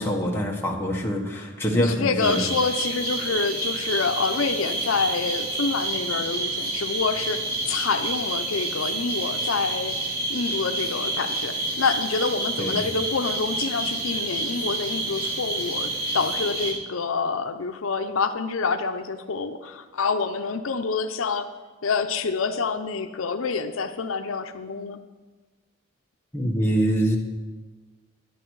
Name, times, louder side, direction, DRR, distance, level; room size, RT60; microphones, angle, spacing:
voice 1, 0.0-2.4 12.6-12.8 26.3-27.2, equal, 10° left, -1 dB, 1.4 m, -24 dB
voice 2, 1.7-7.4 7.7-9.9 10.3-21.5 21.8-25.0, left 4 dB, 75° left, 7 dB, 0.6 m, -27 dB
sound 1, 2.2-16.7, right 2 dB, 45° right, 3.1 m, -29 dB
11.0 x 10.5 x 4.7 m, 1.3 s
head